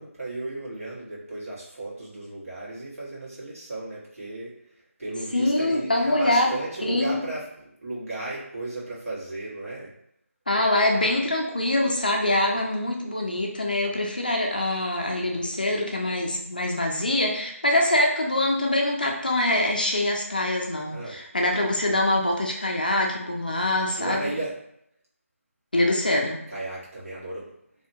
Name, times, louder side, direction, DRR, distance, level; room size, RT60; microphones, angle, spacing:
voice 1, 0.0-7.5 7.8-9.9 20.9-21.2 24.0-24.5 26.5-27.5, right 2 dB, 70° right, -8 dB, 1.4 m, -35 dB
voice 2, 5.3-6.5 6.8-7.2 10.5-24.3 25.7-26.4, left 1 dB, 35° left, 1 dB, 0.3 m, -24 dB
2.7 x 2.2 x 2.7 m, 0.74 s
figure-of-eight pair, 175°, 8 cm